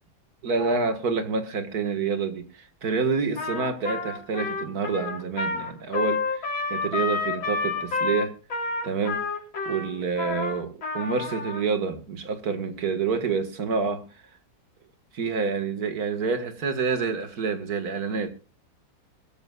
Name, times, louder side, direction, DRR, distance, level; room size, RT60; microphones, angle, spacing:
voice 1, 0.4-8.3 8.8-9.2 9.6-14.1 15.1-18.3, right 5 dB, 50° right, 2.2 m, -28 dB
Trumpet, 3.4-11.6, left 4 dB, 75° left, 4.0 m, -29 dB
22.0 x 13.0 x 2.4 m
omnidirectional pair, 2.2 m